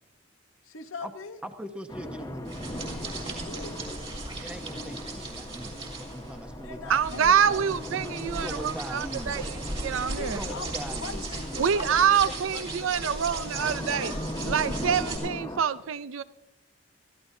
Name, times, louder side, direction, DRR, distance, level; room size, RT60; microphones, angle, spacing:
voice 1, 0.6-1.4 3.2-3.8 6.6-7.7 10.2-13.8, left 4 dB, 85° left, 1.0 m, -42 dB
voice 2, 1.4-2.7 4.4-7.5 8.3-9.5 10.2-11.8, equal, 5° right, 0.7 m, -41 dB
sound 1, 1.9-15.6, left 1 dB, 20° left, 1.1 m, -39 dB
sound 2, 2.5-15.2, right 2 dB, 30° right, 3.3 m, -37 dB
voice 3, 6.9-10.4 11.6-14.1 14.4-16.2, right 7 dB, 85° right, 0.5 m, -26 dB
22.5 x 14.5 x 2.7 m
head